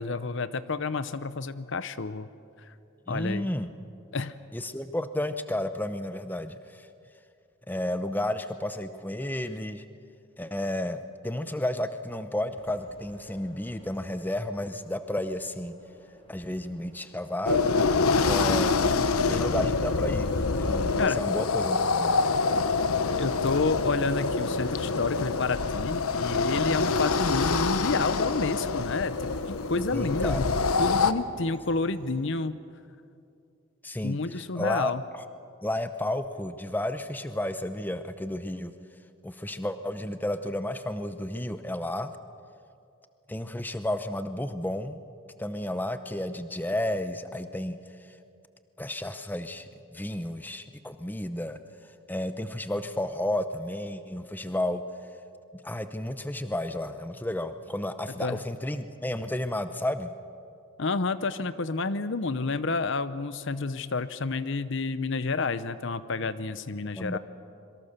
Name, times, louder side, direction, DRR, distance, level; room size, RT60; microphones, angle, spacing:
voice 1, 0.0-2.3 3.1-3.5 4.1-4.3 21.0-21.2 23.2-30.5 30.8-32.6 34.0-35.0 58.2-58.4 60.8-67.2, left 3 dB, 60° left, 14 dB, 0.8 m, -29 dB
voice 2, 3.1-3.7 4.5-6.9 7.7-9.8 10.4-15.7 16.3-17.7 18.2-22.1 29.9-30.4 33.8-35.2 35.6-38.7 39.2-42.1 43.3-45.0 45.4-47.8 48.8-51.6 52.1-54.8 55.6-60.1 66.8-67.2, left 1 dB, 10° left, 10 dB, 0.7 m, -32 dB
sound 1, 12.6-32.1, equal, 25° left, 5.2 m, -51 dB
sound 2, 17.5-31.1, left 4 dB, 85° left, 0.9 m, -26 dB
26.0 x 23.5 x 6.7 m, 2.5 s
head